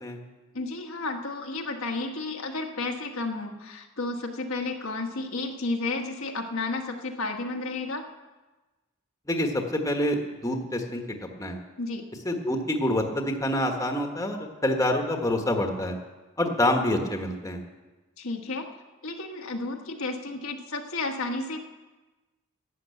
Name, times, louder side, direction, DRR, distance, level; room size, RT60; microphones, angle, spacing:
voice 1, 0.5-8.0 11.8-12.0 18.2-18.7 19.0-21.6, left 3 dB, 75° left, 2 dB, 1.4 m, -32 dB
voice 2, 9.3-10.2 10.4-11.0 11.4-11.6 12.2-15.9 16.4-17.6, left 1 dB, 15° left, 3 dB, 1.3 m, -26 dB
12.0 x 9.6 x 8.3 m, 1.2 s
head